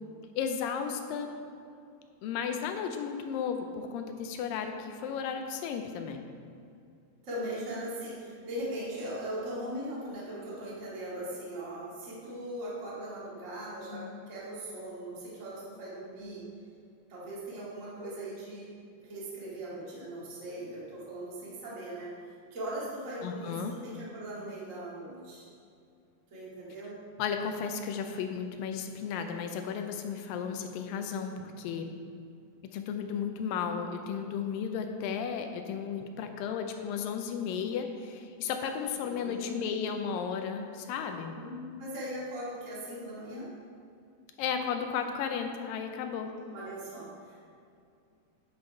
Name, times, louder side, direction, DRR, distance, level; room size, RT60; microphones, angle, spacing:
voice 1, 0.3-1.4 2.2-6.3 13.9-14.1 23.2-23.7 27.2-31.9 32.7-41.3 44.4-46.3, left 7 dB, 80° left, 5 dB, 2.2 m, -34 dB
voice 2, 7.2-16.4 17.1-18.7 19.0-25.4 26.3-27.0 38.9-40.0 41.3-43.5 46.5-47.5, right 1 dB, 25° right, -8 dB, 1.8 m, -39 dB
10.5 x 5.6 x 4.4 m, 2.4 s
omnidirectional pair, 4.2 m